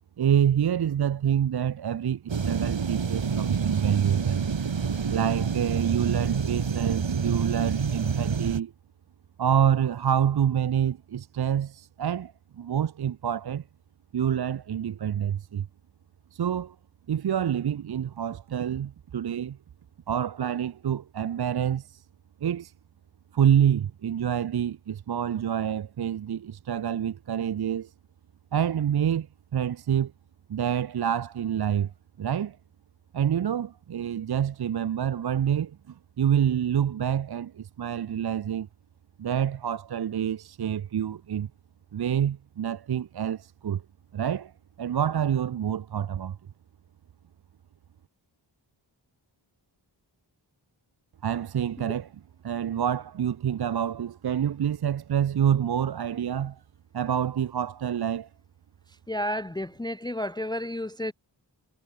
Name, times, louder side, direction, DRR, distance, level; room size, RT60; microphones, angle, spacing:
voice 1, 0.2-4.4 5.1-8.7 9.4-13.6 14.1-15.7 16.3-16.8 17.1-19.6 20.1-22.0 22.4-22.7 23.3-27.9 28.5-29.3 29.5-30.1 30.5-31.9 32.2-32.6 33.1-38.7 39.2-41.5 41.9-43.8 44.1-44.5 44.8-46.4 51.2-52.1 52.4-56.6 56.9-58.3, right 9 dB, 55° right, 0.5 m, -27 dB
sound 1, 2.3-8.6, right 6 dB, 75° right, 1.5 m, -27 dB
voice 2, 59.1-61.1, left 1 dB, 10° left, 0.6 m, -31 dB
wide cardioid pair, 55°, 46 cm